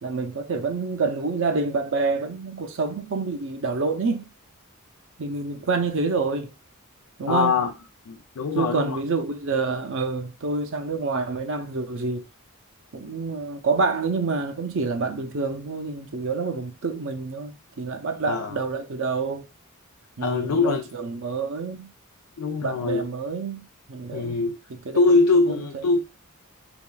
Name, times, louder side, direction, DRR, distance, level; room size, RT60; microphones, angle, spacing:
voice 1, 0.0-4.2 5.2-6.5 7.2-7.5 8.5-12.2 12.9-19.5 20.2-21.9 22.6-24.4 24.8-25.3, right 4 dB, 60° right, 0.6 m, -27 dB
voice 2, 7.3-7.7 8.1-9.0 18.3-18.6 20.2-20.9 22.4-23.1 24.1-24.6 24.9-26.0, left 4 dB, 90° left, 0.5 m, -22 dB
3.5 x 3.5 x 2.2 m
head